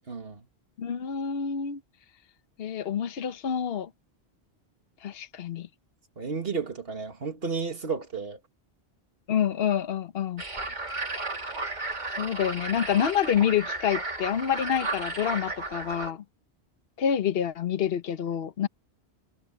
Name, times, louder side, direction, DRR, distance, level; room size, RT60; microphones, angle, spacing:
voice 1, 0.1-0.4 6.2-8.4, right 5 dB, 65° right, 2.2 m, -32 dB
voice 2, 0.8-1.8 2.6-3.9 5.0-5.7 9.3-10.4 12.2-16.2 17.0-18.7, left 8 dB, 65° left, 1.1 m, -27 dB
sound 1, 10.4-16.1, right 2 dB, 45° right, 2.4 m, -34 dB
omnidirectional pair, 1.1 m